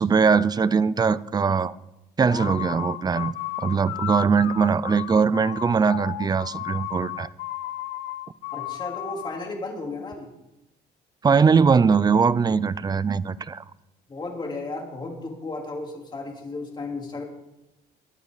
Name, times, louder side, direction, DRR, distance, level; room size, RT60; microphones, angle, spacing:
voice 1, 0.0-1.7 2.2-3.3 3.6-7.3 11.2-13.6, right 5 dB, 25° right, 0.5 m, -21 dB
sound 1, 2.2-9.5, left 15 dB, 85° left, 0.7 m, -34 dB
voice 2, 8.5-10.3 14.1-17.2, left 3 dB, 25° left, 3.8 m, -34 dB
22.5 x 9.3 x 4.1 m
cardioid pair, 110°, 17 cm